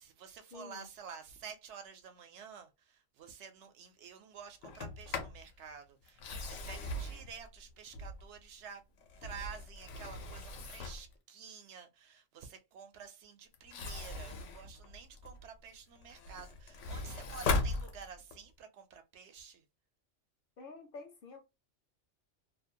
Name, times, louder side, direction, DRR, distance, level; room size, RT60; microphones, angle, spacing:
voice 1, 0.0-8.8 9.2-19.6, right 6 dB, 75° right, 0.9 m, -50 dB
voice 2, 0.5-0.9 20.6-21.4, left 4 dB, 60° left, 0.7 m, -49 dB
Sliding door, 4.6-5.4 6.1-8.4 9.0-11.1 13.5-15.5 15.9-18.4, left 3 dB, 90° left, 1.0 m, -39 dB
2.5 x 2.1 x 2.6 m
omnidirectional pair, 1.2 m